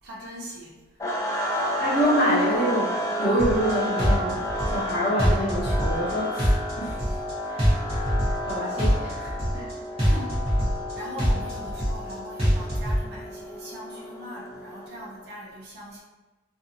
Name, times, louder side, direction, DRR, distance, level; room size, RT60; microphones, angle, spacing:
voice 1, 0.0-0.8 1.7-1.9 10.0-10.4 10.9-16.0, equal, 50° right, -5 dB, 0.6 m, -41 dB
sound 1, 1.0-15.1, left 1 dB, 15° left, 0.3 m, -31 dB
voice 2, 1.5-7.0 7.5-10.1, equal, 55° left, -10 dB, 1.2 m, -27 dB
sound 2, 3.4-3.7 4.0-4.9 5.2-6.1 6.4-7.3 7.6-8.5 8.8-9.7 10.0-10.9 11.2-12.1 12.4-13.0, equal, 30° right, 0.9 m, -23 dB
2.6 x 2.4 x 2.6 m, 1.2 s
head